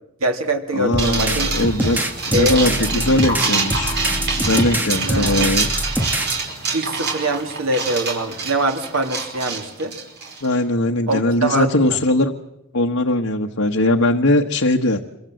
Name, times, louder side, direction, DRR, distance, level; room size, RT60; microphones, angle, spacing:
voice 1, 0.2-1.5 2.3-3.0 5.0-5.5 6.7-10.0 11.1-12.0, right 2 dB, 80° right, 4 dB, 2.7 m, -23 dB
voice 2, 0.7-4.0 4.4-5.7 10.4-12.3 12.7-15.0, left 1 dB, 80° left, 2 dB, 1.4 m, -20 dB
sound 1, 0.9-6.4, right 1 dB, 10° right, 1.3 m, -24 dB
sound 2, 1.0-10.5, right 4 dB, 55° right, 5.2 m, -26 dB
sound 3, 2.5-7.4, equal, 35° right, 3.4 m, -36 dB
27.0 x 23.5 x 7.8 m, 0.90 s
head